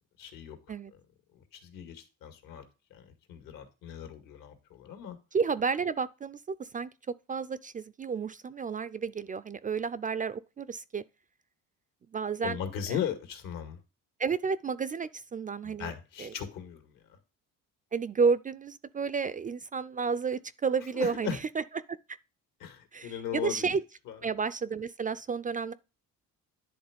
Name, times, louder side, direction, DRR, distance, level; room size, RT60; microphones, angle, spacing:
voice 1, 0.2-0.6 1.4-2.6 2.9-5.2 12.4-13.8 15.6-16.9 20.9-21.4 22.6-23.7 24.1-24.2, left 9 dB, 75° left, 2.1 m, -37 dB
voice 2, 5.3-6.9 7.3-11.0 12.1-12.6 12.9-13.0 14.2-15.9 16.2-16.3 17.9-21.6 21.9-22.0 22.9-23.8 24.2-25.7, right 5 dB, 25° right, 0.3 m, -31 dB
10.5 x 3.6 x 5.0 m
cardioid pair, 105°, 33 cm